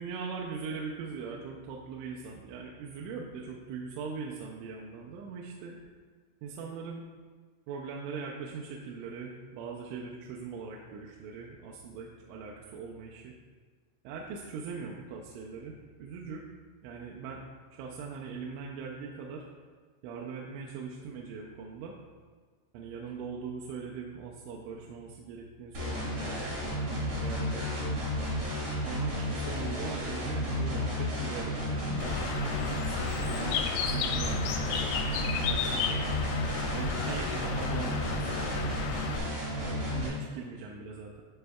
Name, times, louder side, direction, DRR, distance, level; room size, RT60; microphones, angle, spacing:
voice 1, 0.0-5.8 6.4-7.0 7.7-13.3 14.0-16.5 16.8-17.5 17.7-19.5 20.0-22.0 22.7-28.1 28.8-35.1 35.5-36.1 36.7-38.8 39.2-41.2, right 5 dB, 85° right, -2 dB, 2.9 m, -41 dB
sound 1, 25.7-40.1, left 1 dB, 60° right, 1.1 m, -33 dB
Bird, 32.0-39.2, left 5 dB, 85° left, 2.6 m, -33 dB
11.5 x 5.2 x 2.3 m, 1.5 s
omnidirectional pair, 5.4 m